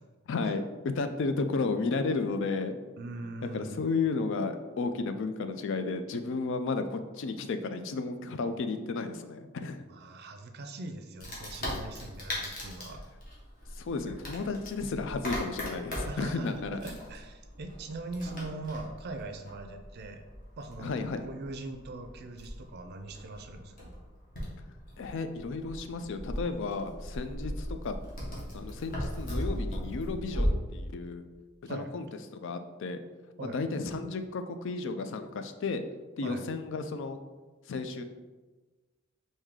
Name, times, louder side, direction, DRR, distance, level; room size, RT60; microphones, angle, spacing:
voice 1, 0.3-2.8 3.5-9.8 13.8-16.8 20.8-21.2 25.0-28.0 28.5-31.3 31.6-32.1 32.3-33.0 33.4-35.8 36.2-37.2 37.7-38.0, left 3 dB, 65° left, 8 dB, 0.4 m, -33 dB
voice 2, 2.9-3.8 9.9-13.0 16.1-20.2 20.6-24.0 31.7-31.9 33.4-33.6 36.2-36.5, right 2 dB, 50° right, 6 dB, 0.4 m, -41 dB
Wood, 11.2-30.5, equal, 45° left, 1.2 m, -38 dB
4.8 x 2.7 x 3.6 m, 1.3 s
head